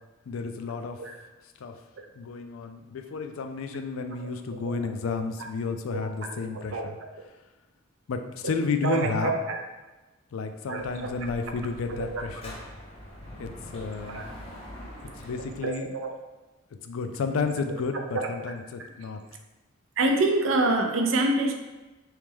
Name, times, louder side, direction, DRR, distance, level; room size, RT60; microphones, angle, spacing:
voice 1, 0.3-1.0 1.6-1.8 2.1-7.0 8.1-9.4 10.3-12.6 13.4-14.3 15.2-15.9 16.8-19.2, left 4 dB, 90° left, 7 dB, 0.4 m, -32 dB
voice 2, 5.9-7.1 8.4-8.5 8.8-9.6 10.7-11.1 12.0-12.2 14.1-14.3 15.6-16.2 17.9-18.3 20.0-21.5, right 2 dB, 75° right, 4 dB, 0.5 m, -27 dB
Dog / Motorcycle, 10.7-15.7, equal, 25° left, 0.7 m, -43 dB
3.2 x 3.1 x 3.4 m, 1.1 s
head